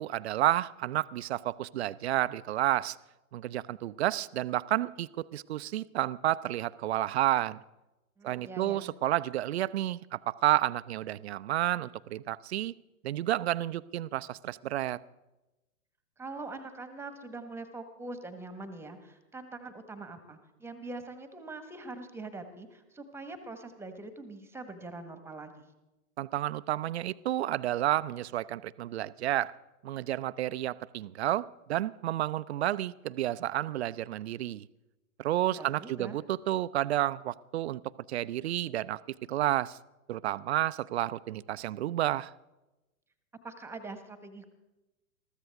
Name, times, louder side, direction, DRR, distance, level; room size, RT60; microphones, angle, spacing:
voice 1, 0.0-3.0 3.3-7.6 8.2-12.7 13.0-15.0 26.2-29.5 29.8-34.7 35.2-37.8 38.1-39.0 39.3-39.8 40.1-42.3, right 13 dB, 50° right, 18 dB, 0.5 m, -30 dB
voice 2, 8.2-8.9 16.2-25.7 35.4-36.2 43.4-44.5, right 3 dB, 5° right, 9 dB, 1.3 m, -43 dB
21.0 x 14.5 x 3.5 m, 1.0 s
figure-of-eight pair, 110°, 43 cm